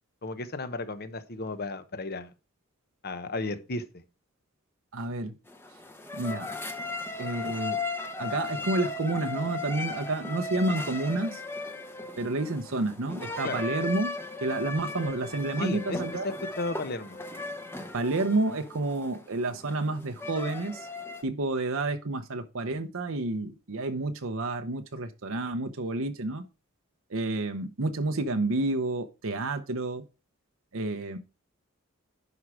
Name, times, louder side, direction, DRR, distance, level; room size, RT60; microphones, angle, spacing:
voice 1, 0.2-2.3 3.0-4.0 13.4-13.6 15.6-16.0 16.2-17.2, left 2 dB, 45° left, 11 dB, 1.0 m, -34 dB
voice 2, 4.9-5.3 6.1-6.5 7.2-7.8 8.2-11.4 12.2-14.1 14.4-16.3 17.9-20.9 21.2-26.4 27.1-30.0 30.7-31.2, right 2 dB, 65° right, 6 dB, 0.8 m, -30 dB
sound 1, 5.5-21.2, left 3 dB, 10° left, 0.9 m, -37 dB
11.0 x 4.6 x 4.8 m, 0.31 s
head